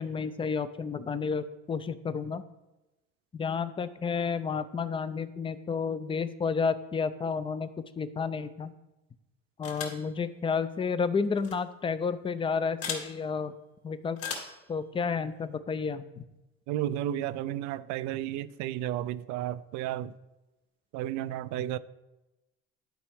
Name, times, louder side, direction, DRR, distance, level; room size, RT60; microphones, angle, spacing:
voice 1, 0.0-2.4 3.3-7.7 8.0-8.7 9.6-13.5 13.8-14.2 14.7-16.2, left 5 dB, 20° left, 0.4 m, -31 dB
sound 1, 9.6-10.1 11.4-11.5 12.8-13.1 14.2-14.6, left 5 dB, 50° left, 2.3 m, -36 dB
voice 2, 16.7-20.2 20.9-21.8, right 12 dB, 70° right, 0.5 m, -32 dB
11.0 x 4.5 x 3.5 m
supercardioid pair, 100°, 29 cm